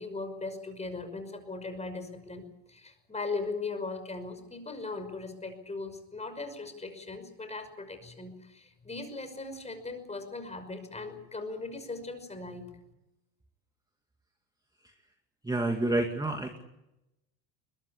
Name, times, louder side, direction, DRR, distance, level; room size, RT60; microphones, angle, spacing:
voice 1, 0.0-2.4 2.7-12.6, left 3 dB, 15° left, 8 dB, 5.7 m, -38 dB
voice 2, 15.4-16.6, right 2 dB, 10° right, 5 dB, 2.2 m, -28 dB
22.0 x 21.5 x 8.5 m, 0.90 s
supercardioid pair, 110°, 48 cm